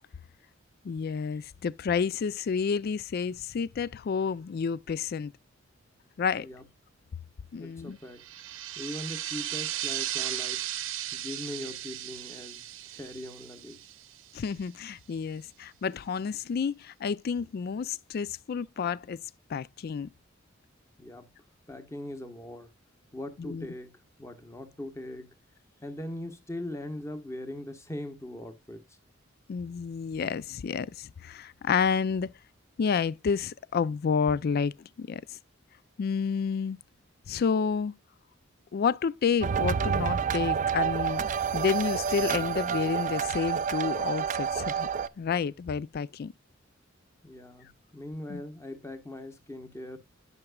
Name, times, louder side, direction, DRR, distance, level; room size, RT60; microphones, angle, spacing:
voice 1, 0.8-5.3 6.2-6.5 7.5-8.0 14.3-19.2 19.5-20.1 23.4-23.7 29.5-32.3 32.8-35.2 36.0-36.8 37.3-37.9 38.7-44.9 45.2-46.3 48.3-48.4, left 6 dB, 50° left, 0.3 m, -30 dB
voice 2, 7.6-8.3 8.7-10.7 11.1-13.9 21.0-21.3 21.7-22.7 23.1-25.3 25.8-28.8 47.2-50.0, left 1 dB, 15° left, 1.1 m, -40 dB
sound 1, 8.2-14.5, right 12 dB, 75° right, 0.8 m, -36 dB
sound 2, 39.4-45.1, right 7 dB, 40° right, 0.4 m, -29 dB
10.5 x 6.0 x 2.2 m
head